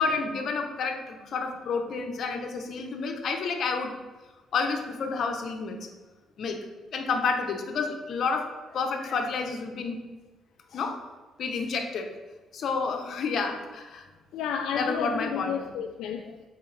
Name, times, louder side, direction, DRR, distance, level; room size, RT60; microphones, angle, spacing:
voice 1, 0.0-3.9 4.5-5.9 6.4-6.6 6.9-10.0 10.7-11.0 11.4-12.2 12.5-14.0 14.7-15.5, left 4 dB, 65° left, 4 dB, 0.8 m, -30 dB
voice 2, 14.3-16.4, left 7 dB, 90° left, 4 dB, 0.3 m, -31 dB
6.6 x 4.4 x 3.3 m, 1.3 s
cardioid pair, 90°, 0 cm